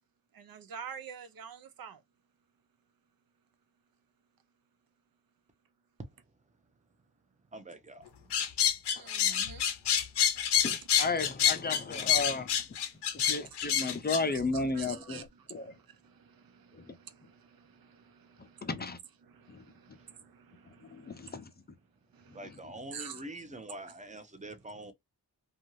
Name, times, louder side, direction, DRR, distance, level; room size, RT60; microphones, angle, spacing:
voice 1, 0.3-2.0 8.9-9.7 13.9-18.7 19.2-21.4 22.1-22.6 22.9-23.2, right 7 dB, 60° right, 0.6 m, -48 dB
voice 2, 7.5-8.0 22.3-24.9, right 1 dB, 20° right, 0.8 m, -44 dB
sound 1, 8.3-14.2, left 9 dB, 85° left, 0.7 m, -27 dB
voice 3, 10.6-12.5 13.1-15.7 18.6-19.0 19.5-19.6 20.9-21.4, left 3 dB, 25° left, 0.5 m, -33 dB
2.6 x 2.4 x 3.0 m
cardioid pair, 70°, 40 cm